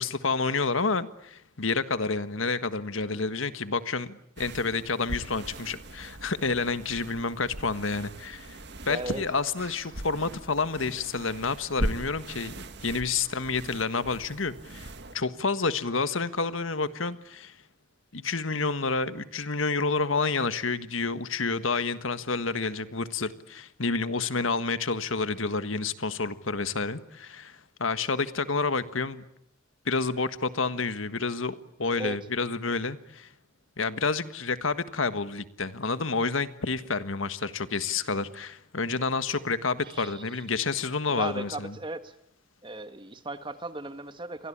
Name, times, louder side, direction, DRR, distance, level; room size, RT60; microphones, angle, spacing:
voice 1, 0.0-8.6 8.8-14.9 15.1-17.5 18.1-29.2 29.8-33.3 33.8-41.7, left 4 dB, 85° left, 1.6 m, -29 dB
sound 1, 4.4-15.2, right 1 dB, 60° right, 1.9 m, -39 dB
voice 2, 8.8-9.2 32.0-32.2 39.8-40.4 41.1-42.1 42.6-44.5, right 2 dB, 25° right, 1.6 m, -37 dB
29.5 x 23.0 x 8.8 m
head